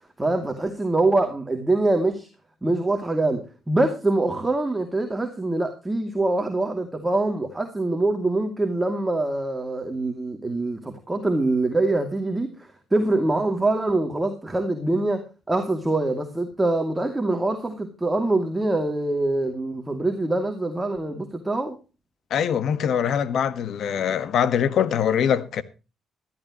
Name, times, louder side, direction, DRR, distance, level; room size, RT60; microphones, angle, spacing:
voice 1, 0.2-2.3 2.6-21.8, right 2 dB, 15° right, 2.6 m, -24 dB
voice 2, 22.3-25.6, left 8 dB, 70° left, 1.4 m, -23 dB
16.0 x 14.0 x 3.0 m
cardioid pair, 90°, 0 cm